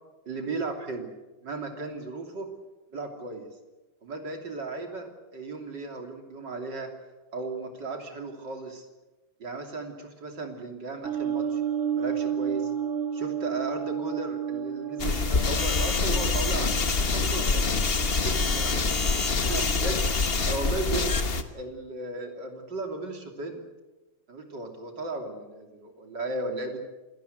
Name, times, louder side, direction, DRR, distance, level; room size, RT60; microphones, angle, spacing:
voice 1, 0.3-1.1 1.4-2.5 2.9-3.5 4.0-6.9 7.3-8.9 9.4-11.6 11.9-12.7 13.1-18.8 19.4-20.1 20.5-21.1 21.5-23.6 24.3-26.8, right 3 dB, 65° right, 3 dB, 3.7 m, -36 dB
sound 1, 11.0-20.1, right 8 dB, 40° right, 2.6 m, -33 dB
sound 2, 15.0-21.4, left 4 dB, 35° left, 1.4 m, -25 dB
27.0 x 17.5 x 8.1 m, 1.1 s
omnidirectional pair, 2.1 m